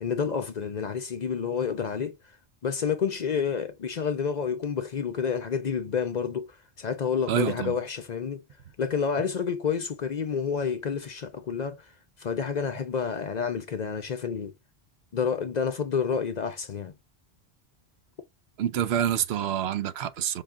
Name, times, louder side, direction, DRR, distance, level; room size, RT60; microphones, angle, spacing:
voice 1, 0.0-2.2 2.6-8.4 8.8-11.9 12.2-14.5 15.1-16.9, left 6 dB, 50° left, 0.6 m, -29 dB
voice 2, 7.3-7.7 18.6-20.4, right 10 dB, 75° right, 0.8 m, -27 dB
5.5 x 2.3 x 3.5 m
omnidirectional pair, 1.1 m